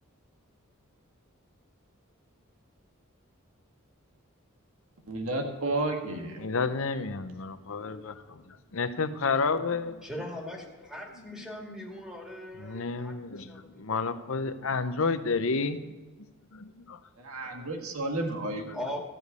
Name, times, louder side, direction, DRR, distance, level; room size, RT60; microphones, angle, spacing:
voice 1, 5.1-6.4 17.2-18.6, right 2 dB, 85° right, 3 dB, 1.6 m, -31 dB
voice 2, 6.4-8.1 8.7-10.0 12.6-15.8 16.5-17.0 17.4-17.6, left 4 dB, 70° left, 11 dB, 0.7 m, -30 dB
voice 3, 10.0-14.0 18.7-19.1, left 1 dB, 5° right, -1 dB, 2.1 m, -40 dB
13.5 x 5.2 x 8.1 m, 1.2 s
head